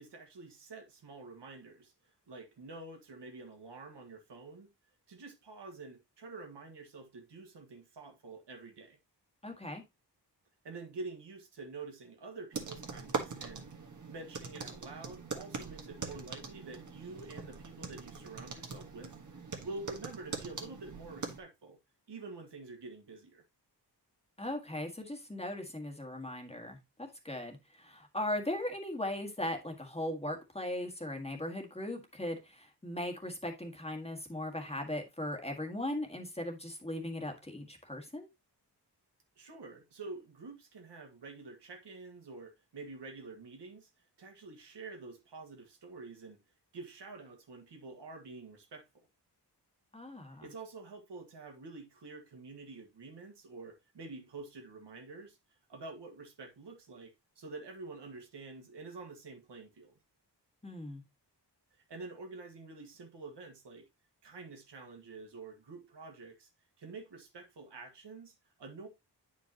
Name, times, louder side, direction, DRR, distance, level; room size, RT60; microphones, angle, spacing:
voice 1, 0.0-4.7 5.1-9.0 10.6-13.7 14.1-19.1 19.6-21.8 22.1-23.4 39.4-43.9 44.2-46.4 46.7-49.1 50.4-55.4 55.7-60.0 61.7-63.9 64.2-66.5 66.8-68.9, right 3 dB, 80° right, 1.7 m, -48 dB
voice 2, 9.4-9.8 24.4-38.3 49.9-50.4 60.6-61.0, left 1 dB, 15° left, 1.7 m, -38 dB
sound 1, 12.5-21.4, right 4 dB, 45° right, 1.4 m, -42 dB
8.9 x 5.1 x 2.9 m
wide cardioid pair, 105°, 41 cm